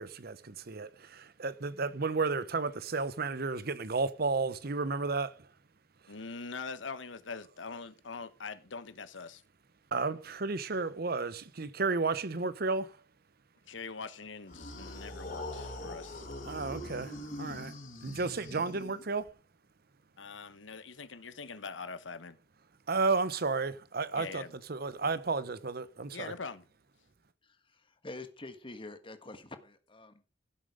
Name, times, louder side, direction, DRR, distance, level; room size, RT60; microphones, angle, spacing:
voice 1, 0.0-5.5 9.9-13.0 16.4-17.7 18.0-19.3 22.9-24.4 24.7-26.3, right 4 dB, 55° right, 0.9 m, -32 dB
voice 2, 6.1-9.4 13.7-16.3 20.2-22.4 24.1-24.5 26.1-26.6, left 4 dB, 80° left, 1.2 m, -43 dB
sound 1, 14.5-19.3, left 1 dB, 50° left, 3.6 m, -42 dB
voice 3, 27.4-30.2, left 2 dB, 25° left, 1.5 m, -47 dB
16.0 x 7.6 x 5.1 m
head